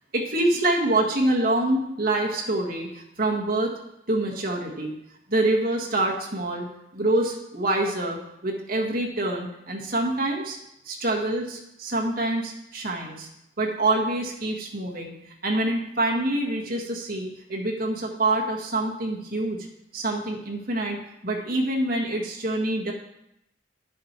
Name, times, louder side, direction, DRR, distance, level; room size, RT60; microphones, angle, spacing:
voice 1, 0.1-3.7 4.1-4.9 5.3-6.7 6.9-10.6 10.8-13.3 13.6-15.1 15.4-19.6 19.9-22.9, right 2 dB, 50° right, -1 dB, 1.5 m, -26 dB
10.0 x 7.4 x 4.4 m, 0.81 s
head